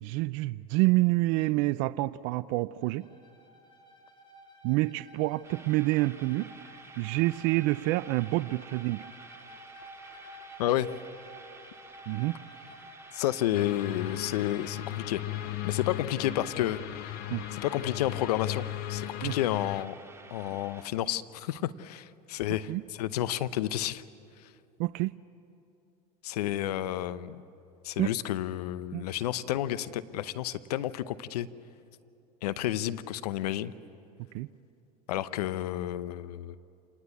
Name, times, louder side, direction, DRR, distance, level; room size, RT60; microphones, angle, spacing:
voice 1, 0.0-3.0 4.6-6.5 7.0-9.0 12.1-12.3 17.3-17.4 19.2-19.4 22.7-22.8 24.8-25.1 28.0-28.1 28.9-29.0 34.3-34.5, right 20 dB, 60° right, 15 dB, 0.5 m, -27 dB
Bowed string instrument, 2.8-13.3, right 1 dB, 25° left, 4.5 m, -52 dB
sound 1, 5.4-20.8, right 3 dB, 15° right, 2.3 m, -52 dB
voice 2, 10.6-10.9 13.1-15.2 15.6-17.1 17.5-19.9 20.3-24.0 24.4-24.5 26.2-27.4 27.8-31.5 32.4-33.7 35.1-36.6, left 12 dB, 85° left, 15 dB, 0.8 m, -31 dB
sound 2, 13.5-19.8, left 16 dB, 55° left, 0.6 m, -37 dB
27.0 x 20.0 x 8.4 m, 2.6 s
hypercardioid pair, 95°, 20 cm